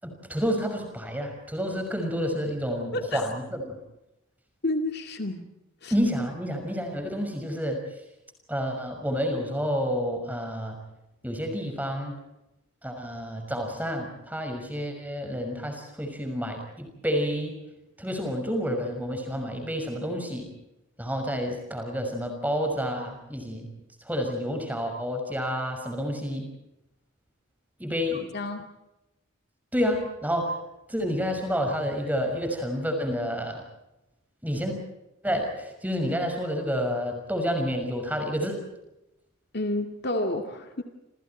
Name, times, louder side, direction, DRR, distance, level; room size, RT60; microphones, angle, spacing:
voice 1, 0.0-3.7 5.9-7.8 8.5-10.8 11.2-12.2 12.8-17.5 18.0-20.5 21.0-23.7 24.0-26.5 27.8-28.2 29.7-30.6 30.9-33.7 34.4-34.8 35.2-38.6, equal, 10° right, 4 dB, 6.0 m, -29 dB
voice 2, 2.9-3.2 4.6-5.4 5.8-5.9 28.1-28.6 39.5-40.8, left 1 dB, 50° left, 5 dB, 2.3 m, -30 dB
29.0 x 28.5 x 4.5 m, 0.93 s
head